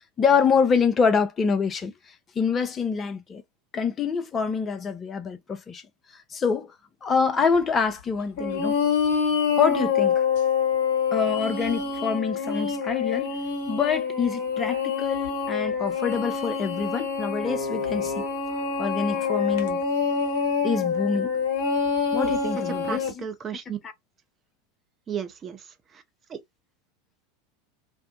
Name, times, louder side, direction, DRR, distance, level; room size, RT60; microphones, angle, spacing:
voice 1, 0.2-3.4 3.7-5.8 6.1-6.7 7.0-8.8 9.6-10.3 11.1-13.3 13.7-18.2 18.8-19.8 20.6-21.3 22.1-23.2 23.8-23.9, left 5 dB, 25° left, 0.6 m, -26 dB
sound 1, 8.4-23.1, left 6 dB, 55° left, 1.1 m, -26 dB
voice 2, 22.8-23.8 25.1-25.6 26.3-26.4, right 7 dB, 30° right, 0.6 m, -33 dB
2.6 x 2.1 x 2.6 m
figure-of-eight pair, 85°, 0 cm